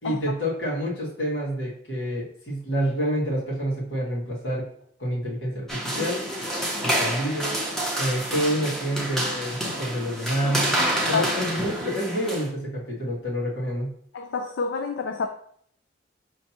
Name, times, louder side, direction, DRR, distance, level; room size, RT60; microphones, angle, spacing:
voice 1, 0.0-4.6 5.0-6.2 6.8-7.6 8.0-10.7 11.1-13.9, equal, 70° left, 1.8 m, -28 dB
sound 1, 5.7-12.5, right 1 dB, 5° left, 0.7 m, -28 dB
voice 2, 14.1-15.3, left 4 dB, 85° left, 0.4 m, -27 dB
5.7 x 3.2 x 2.8 m
head